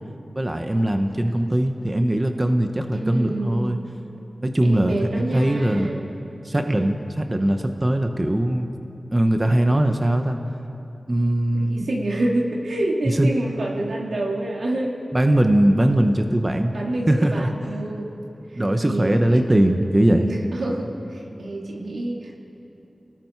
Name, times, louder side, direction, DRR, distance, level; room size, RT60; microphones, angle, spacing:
voice 1, 0.3-3.8 4.4-5.9 6.4-8.7 9.1-10.4 11.1-11.9 13.1-13.3 15.1-16.7 17.1-17.5 18.6-20.3, right 1 dB, 25° right, 5 dB, 1.0 m, -20 dB
voice 2, 2.9-3.7 4.6-6.1 11.7-15.0 16.7-18.1 18.5-19.4 20.1-22.3, right 1 dB, 85° right, -2 dB, 2.8 m, -27 dB
29.0 x 19.0 x 4.7 m, 3.0 s
wide cardioid pair, 90°, 0 cm